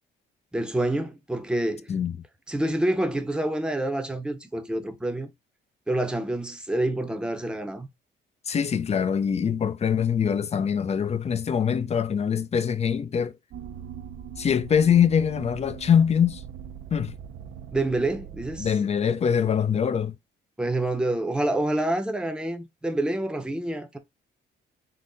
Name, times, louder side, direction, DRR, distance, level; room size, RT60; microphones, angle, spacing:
voice 1, 0.5-1.9 2.5-5.3 5.9-7.9 17.7-18.7 20.6-24.0, right 1 dB, 5° right, 0.7 m, -27 dB
voice 2, 8.5-13.3 14.4-16.4 16.9-17.1 18.6-20.2, left 7 dB, 35° left, 0.4 m, -23 dB
sound 1, 13.5-18.7, right 8 dB, 75° right, 0.6 m, -41 dB
3.8 x 2.1 x 3.9 m
cardioid pair, 90°, 20 cm